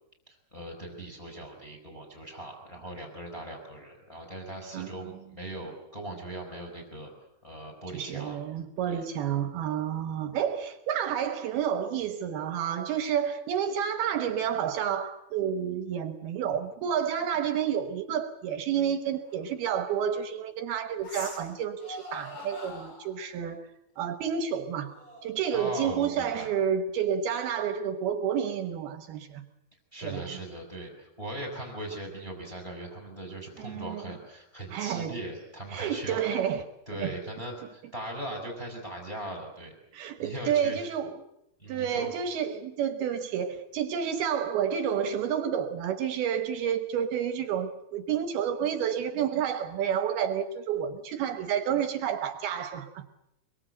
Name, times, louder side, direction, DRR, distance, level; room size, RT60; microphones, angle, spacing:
voice 1, 0.3-8.4 8.9-9.0 25.5-26.5 29.9-36.4 36.9-39.7 40.2-40.9 41.6-42.1, right 1 dB, 5° left, 4.6 m, -39 dB
voice 2, 7.9-23.7 24.0-24.9 25.2-29.4 30.0-30.2 33.6-34.0 34.7-35.2 35.7-36.6 36.9-37.1 39.9-41.2 41.7-53.0, right 8 dB, 70° right, 2.8 m, -30 dB
sound 1, 19.3-19.4 21.0-21.5 21.8-23.2 24.8-26.4, left 1 dB, 25° left, 6.2 m, -44 dB
25.0 x 23.0 x 8.0 m
omnidirectional pair, 5.0 m